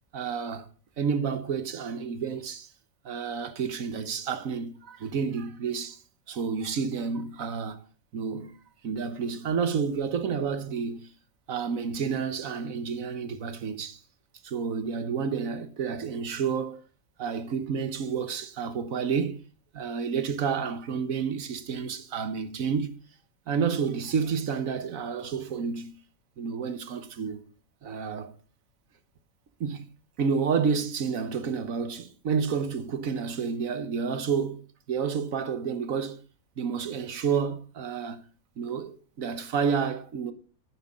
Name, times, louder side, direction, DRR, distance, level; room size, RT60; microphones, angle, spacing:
voice 1, 0.1-0.7 1.0-2.7 3.0-6.0 6.3-7.8 8.1-11.1 11.5-14.0 14.4-16.8 17.2-19.4 19.7-23.0 23.5-25.9 26.4-27.4 27.8-28.3 29.6-29.9 30.2-36.2 36.6-38.2 38.6-40.3, right 6 dB, 70° right, 1.5 m, -30 dB
10.0 x 9.3 x 5.1 m
omnidirectional pair, 1.5 m